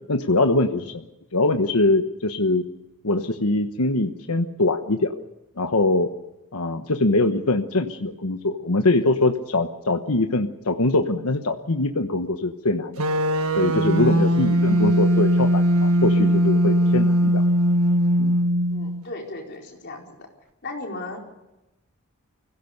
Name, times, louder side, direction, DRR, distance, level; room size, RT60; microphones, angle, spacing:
voice 1, 0.1-0.9 1.3-2.6 3.0-5.1 5.6-6.1 6.5-13.0 13.5-17.4 18.2-18.4, left 2 dB, 75° left, 6 dB, 1.2 m, -23 dB
sound 1, 13.0-19.0, equal, 75° right, 1.5 m, -20 dB
voice 2, 13.9-14.2 18.7-20.3 20.6-21.2, left 2 dB, 50° left, 0 dB, 4.6 m, -36 dB
24.5 x 17.0 x 6.7 m, 0.97 s
head